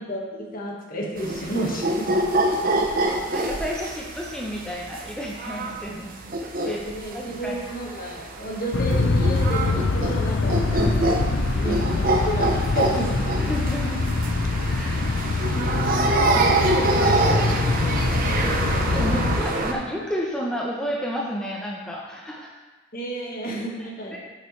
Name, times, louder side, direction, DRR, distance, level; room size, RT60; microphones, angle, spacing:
voice 1, 0.0-2.2 2.6-2.7 6.6-13.5 22.9-24.2, right 1 dB, 45° left, -2 dB, 1.6 m, -31 dB
sound 1, 1.2-19.7, right 2 dB, 45° right, 0.8 m, -26 dB
voice 2, 3.3-6.1 6.7-6.8 7.1-7.6 11.7-12.1 13.4-14.0 14.7-15.1 15.5-17.7 18.1-18.7 18.9-22.5 24.1-24.2, equal, 5° left, -3 dB, 0.8 m, -32 dB
sound 2, 8.7-19.4, left 3 dB, 70° left, 0.6 m, -24 dB
9.0 x 6.8 x 3.2 m, 1.2 s
head